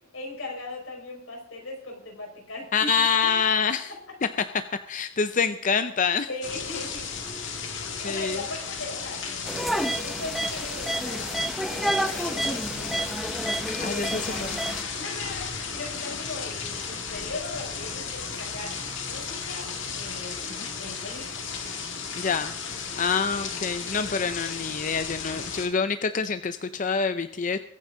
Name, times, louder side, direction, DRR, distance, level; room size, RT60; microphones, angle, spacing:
voice 1, 0.1-2.9 3.2-3.3 6.3-13.3 13.8-18.7 19.1-21.3 22.8-23.1 23.7-24.2, left 2 dB, 85° left, 0 dB, 5.1 m, -39 dB
voice 2, 2.7-3.9 4.9-6.3 8.0-8.4 13.8-14.3 22.1-27.6, left 6 dB, 40° left, 10 dB, 0.6 m, -26 dB
sound 1, 6.4-25.7, left 5 dB, 65° left, 2.0 m, -34 dB
sound 2, 9.5-14.8, right 1 dB, ahead, 0.6 m, -30 dB
22.0 x 9.2 x 3.8 m, 0.69 s
head